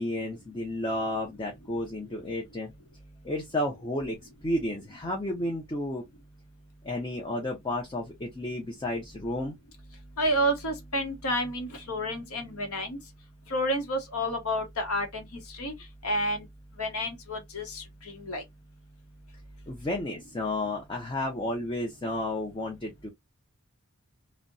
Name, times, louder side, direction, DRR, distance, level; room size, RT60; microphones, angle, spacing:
voice 1, 0.0-2.7 3.2-4.2 4.4-6.0 6.8-9.5 19.7-23.1, left 1 dB, 20° left, 0.5 m, -32 dB
voice 2, 10.2-13.0 13.5-15.7 16.0-16.5 16.8-18.4, equal, 75° left, 0.8 m, -30 dB
2.6 x 2.1 x 2.5 m
head